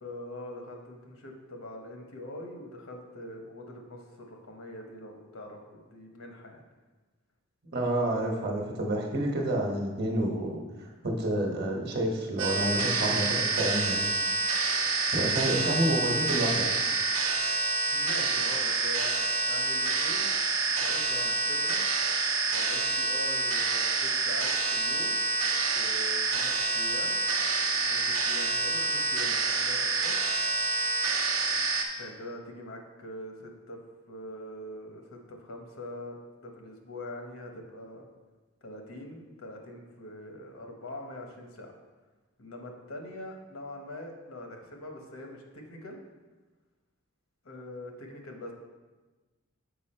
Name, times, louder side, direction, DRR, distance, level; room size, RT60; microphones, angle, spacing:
voice 1, 0.0-6.6 15.3-15.5 17.9-19.1 19.4-20.3 20.7-21.8 22.5-25.2 25.7-27.2 27.9-30.2 32.0-33.8 34.1-38.1 38.6-41.7 42.4-46.0 47.4-48.5, left 1 dB, 70° left, 2 dB, 1.1 m, -43 dB
voice 2, 7.7-10.6 11.0-14.0 15.1-16.7, right 1 dB, 45° right, 1 dB, 1.1 m, -29 dB
sound 1, 12.4-31.8, right 4 dB, 70° right, 0.8 m, -27 dB
6.9 x 5.0 x 4.3 m, 1.2 s
head